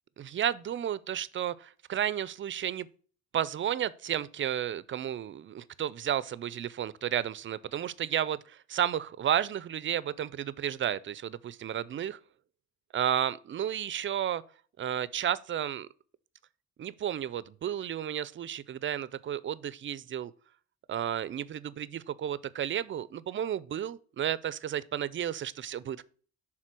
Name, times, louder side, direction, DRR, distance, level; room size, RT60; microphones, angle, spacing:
voice 1, 0.2-2.9 3.3-12.2 12.9-14.4 14.8-15.9 16.8-20.3 20.9-26.0, right 10 dB, 40° right, 0.4 m, -32 dB
6.6 x 3.6 x 6.0 m
cardioid pair, 90°, 30 cm